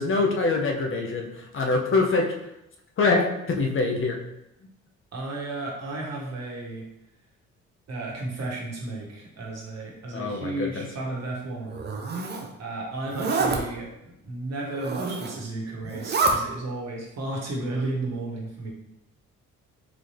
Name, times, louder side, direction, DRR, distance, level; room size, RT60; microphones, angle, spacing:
voice 1, 0.0-2.3 3.0-4.2 10.1-10.9, left 3 dB, 45° left, 1 dB, 0.7 m, -24 dB
voice 2, 5.1-6.8 7.9-11.8 12.6-18.7, right 2 dB, 60° right, -2 dB, 1.3 m, -33 dB
Zipper (clothing), 11.7-12.5 13.1-13.6 14.7-15.4 15.8-16.3, right 3 dB, 35° right, 0.6 m, -27 dB
4.0 x 2.7 x 3.2 m, 0.84 s
cardioid pair, 90°, 30 cm